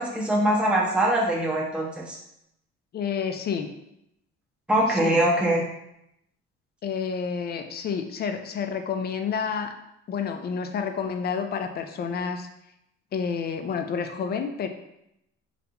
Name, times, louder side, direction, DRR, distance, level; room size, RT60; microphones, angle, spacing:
voice 1, 0.0-2.2 4.7-5.6, right 1 dB, 5° right, -4 dB, 0.7 m, -23 dB
voice 2, 2.9-3.7 4.9-5.2 6.8-9.7 10.1-12.5 13.1-14.7, left 6 dB, 35° left, 6 dB, 0.4 m, -29 dB
3.3 x 2.4 x 2.8 m, 0.80 s
cardioid pair, 100°, 29 cm